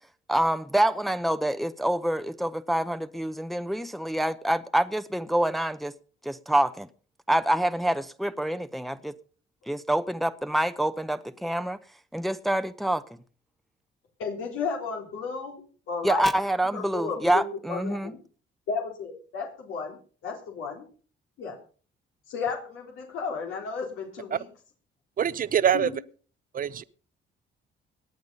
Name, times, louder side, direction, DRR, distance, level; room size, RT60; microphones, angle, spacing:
voice 1, 0.3-5.9 6.2-6.9 7.3-9.1 9.7-11.8 12.1-13.0 16.0-18.1, right 1 dB, ahead, 0.8 m, -26 dB
voice 2, 14.2-16.3 16.7-18.2 18.7-20.0 20.2-20.9 21.4-21.6 22.3-24.5 25.7-25.9, left 5 dB, 90° left, 3.6 m, -33 dB
voice 3, 25.2-25.9 26.5-26.8, right 9 dB, 45° right, 0.7 m, -24 dB
18.5 x 10.0 x 5.4 m
cardioid pair, 90°, 20 cm